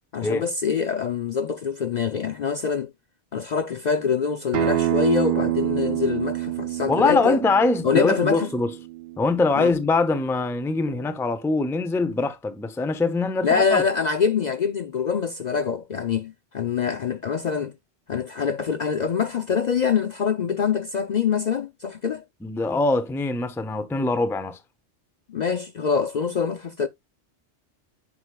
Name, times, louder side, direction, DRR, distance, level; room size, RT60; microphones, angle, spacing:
voice 1, 0.1-2.9 3.3-7.4 7.8-8.5 9.6-9.7 13.4-17.7 18.1-22.2 25.3-26.9, left 6 dB, 50° left, 0.5 m, -24 dB
Acoustic guitar, 4.5-9.7, right 13 dB, 65° right, 0.8 m, -27 dB
voice 2, 6.9-8.7 9.2-13.8 22.4-24.6, left 3 dB, 5° left, 0.4 m, -23 dB
9.5 x 4.6 x 2.2 m
omnidirectional pair, 1.2 m